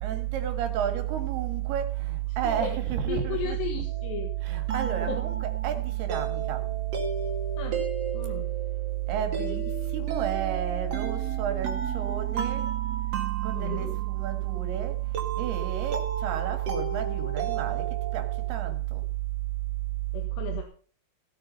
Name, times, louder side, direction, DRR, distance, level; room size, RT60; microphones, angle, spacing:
voice 1, 0.0-3.6 4.4-6.6 9.1-12.7 13.4-15.0 15.4-17.8 18.1-19.0, right 12 dB, 70° right, 3.7 m, -29 dB
voice 2, 3.1-4.3 5.1-5.2 7.6-7.8 8.1-8.5 13.5-14.0 20.1-20.6, left 8 dB, 75° left, 3.8 m, -35 dB
sound 1, 3.9-18.6, right 5 dB, 45° right, 2.4 m, -35 dB
17.5 x 8.7 x 5.5 m
omnidirectional pair, 4.9 m